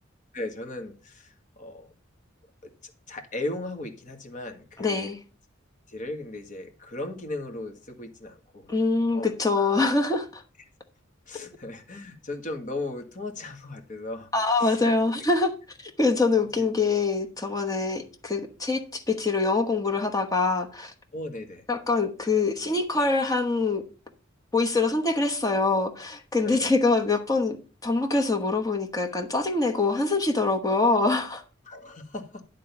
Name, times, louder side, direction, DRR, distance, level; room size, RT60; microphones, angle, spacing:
voice 1, 0.3-1.9 2.8-5.1 5.9-8.8 9.1-9.8 11.3-14.3 14.6-14.9 16.6-16.7 21.1-21.6 26.4-26.7 31.7-32.4, left 2 dB, 40° left, 1.7 m, -37 dB
voice 2, 4.8-5.2 8.7-10.4 11.4-11.5 14.3-15.5 16.0-20.9 21.7-23.8 24.5-27.6 27.8-31.4, left 3 dB, 20° left, 1.1 m, -24 dB
11.0 x 3.8 x 6.9 m
head